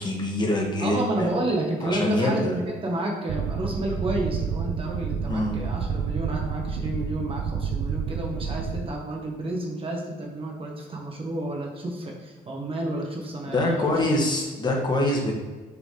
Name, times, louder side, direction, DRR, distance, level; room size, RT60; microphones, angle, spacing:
voice 1, 0.0-1.3 1.8-2.5 5.3-5.6 13.5-15.3, left 1 dB, 25° left, 0 dB, 1.7 m, -25 dB
voice 2, 0.8-13.9, right 1 dB, 30° right, 0 dB, 1.4 m, -30 dB
sound 1, 3.3-8.9, right 6 dB, 60° right, 0.6 m, -29 dB
7.0 x 3.9 x 4.9 m, 1.3 s
cardioid pair, 110°, 17 cm